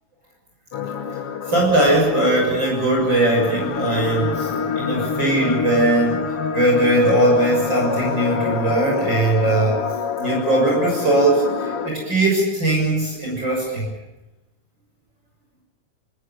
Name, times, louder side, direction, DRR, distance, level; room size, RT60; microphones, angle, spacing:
sound 1, 0.7-11.9, left 6 dB, 55° left, 2.2 m, -27 dB
voice 1, 1.5-4.5 4.8-6.2 6.5-9.8 10.2-13.9, right 1 dB, 35° right, -2 dB, 7.2 m, -19 dB
28.0 x 20.0 x 7.4 m, 1.0 s
omnidirectional pair, 3.5 m